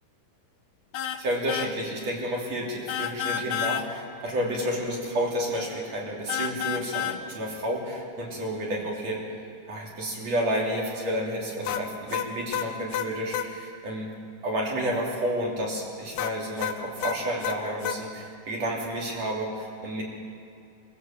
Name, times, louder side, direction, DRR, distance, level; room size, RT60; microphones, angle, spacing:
sound 1, 0.9-1.2 1.5-1.7 2.9-3.8 6.3-7.2 11.7-13.5 16.2-18.0, left 9 dB, 80° left, 2.4 m, -30 dB
voice 1, 1.2-9.2 9.7-14.1 14.4-20.0, equal, 50° right, -3 dB, 4.2 m, -30 dB
25.0 x 15.0 x 7.5 m, 2.5 s
omnidirectional pair, 3.8 m